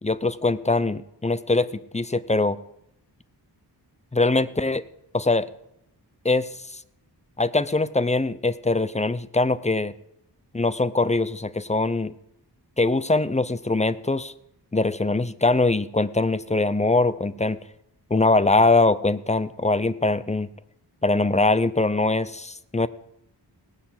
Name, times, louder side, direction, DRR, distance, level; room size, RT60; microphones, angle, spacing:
voice 1, 0.0-2.6 4.1-4.8 5.1-5.5 6.2-6.8 7.4-9.9 10.5-12.1 12.8-14.3 14.7-17.6 18.1-20.5 21.0-22.9, left 2 dB, 15° left, 16 dB, 0.7 m, -22 dB
17.5 x 10.0 x 7.7 m, 0.81 s
wide cardioid pair, 105°, 42 cm